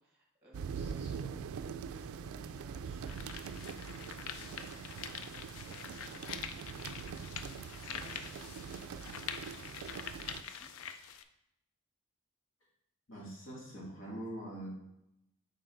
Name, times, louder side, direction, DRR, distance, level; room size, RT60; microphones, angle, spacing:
voice 1, 0.0-4.7 5.2-10.7, right 1 dB, 10° right, -3 dB, 1.4 m, -61 dB
sound 1, 0.5-10.4, right 6 dB, 85° right, 0.3 m, -43 dB
sound 2, 2.0-2.1 2.7-11.2, left 8 dB, 75° left, 0.4 m, -45 dB
voice 2, 13.1-14.7, right 1 dB, 60° left, -3 dB, 1.8 m, -43 dB
6.5 x 3.9 x 3.9 m, 0.85 s
head